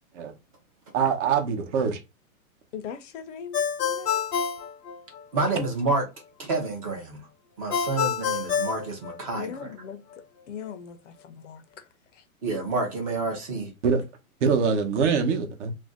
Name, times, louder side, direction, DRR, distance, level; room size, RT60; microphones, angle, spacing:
voice 1, 0.9-2.0 13.8-14.0 14.4-15.7, right 6 dB, 50° right, 0.8 m, -23 dB
voice 2, 2.7-4.2 9.3-10.0 10.5-11.9 12.1-12.2, left 7 dB, 55° left, 0.6 m, -39 dB
Ringtone, 3.5-5.5 7.7-9.7, left 7 dB, 85° left, 0.9 m, -28 dB
voice 3, 5.3-6.0 6.4-7.2 7.6-9.7 12.4-13.7, right 3 dB, 25° right, 0.5 m, -28 dB
2.5 x 2.1 x 3.5 m
hypercardioid pair, 155°, 44 cm